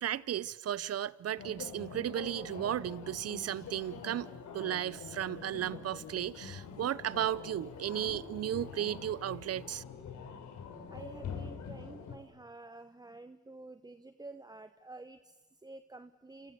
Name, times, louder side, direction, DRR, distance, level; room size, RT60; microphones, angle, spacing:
voice 1, 0.0-9.8, right 11 dB, 55° right, 0.8 m, -35 dB
sound 1, 1.4-12.2, left 6 dB, 70° left, 4.1 m, -45 dB
voice 2, 5.4-6.1 10.7-16.5, right 2 dB, 15° right, 0.9 m, -50 dB
28.5 x 28.0 x 6.9 m
cardioid pair, 90°, 30 cm